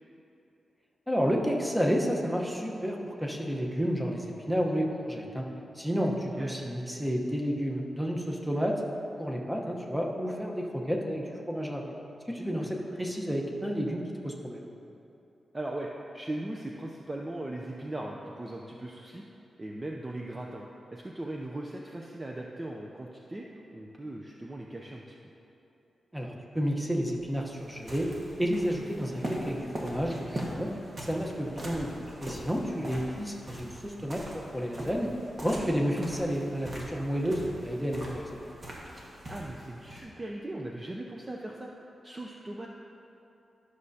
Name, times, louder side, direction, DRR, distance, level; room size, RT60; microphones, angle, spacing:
voice 1, 1.1-5.5 5.7-8.8 9.2-11.8 12.3-14.7 26.1-28.1 28.4-30.7 31.0-35.1 35.4-38.2, equal, 5° right, -1 dB, 1.0 m, -31 dB
voice 2, 12.3-12.7 15.5-19.2 19.6-20.6 20.9-23.5 23.7-25.1 32.6-32.9 39.3-41.7 42.0-42.7, right 1 dB, 25° right, -1 dB, 0.5 m, -39 dB
sound 1, 27.1-40.1, right 1 dB, 40° right, 1.5 m, -41 dB
13.0 x 6.4 x 2.8 m, 2.9 s
cardioid pair, 90°, 0 cm